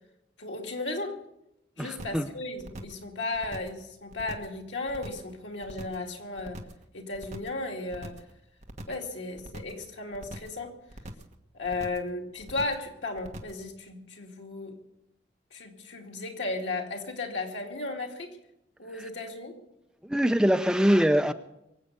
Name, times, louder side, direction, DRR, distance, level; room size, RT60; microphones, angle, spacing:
voice 1, 0.4-1.2 1.8-6.6 6.9-8.2 8.9-10.7 11.5-14.8 15.5-18.4 18.8-19.6, left 2 dB, 90° left, 2 dB, 2.5 m, -35 dB
voice 2, 1.8-2.3 20.0-21.3, equal, 5° right, 8 dB, 0.6 m, -23 dB
sound 1, 2.0-2.3 2.6-3.0 3.3-3.8 4.1-4.6 4.9-5.3 5.6-6.1 6.4-6.8 7.1-7.6 7.9-8.3 8.6-9.1 9.4-9.8 10.1-10.6 10.9-11.3 11.6-12.1 12.4-12.9 13.2-13.6, right 1 dB, 40° right, 1.4 m, -42 dB
23.5 x 8.1 x 6.8 m, 0.85 s
head